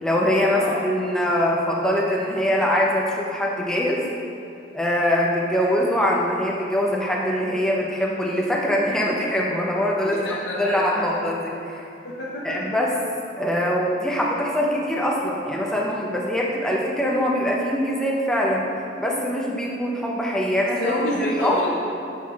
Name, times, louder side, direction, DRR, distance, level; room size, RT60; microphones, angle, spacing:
voice 1, 0.0-4.0 4.7-11.8 12.4-12.9 13.4-18.7 19.0-20.9 21.2-21.6, equal, 5° left, -3 dB, 0.6 m, -23 dB
voice 2, 10.0-11.0 12.0-12.4 20.6-21.7, left 1 dB, 65° left, -7 dB, 0.7 m, -28 dB
7.5 x 6.2 x 2.4 m, 2.8 s
head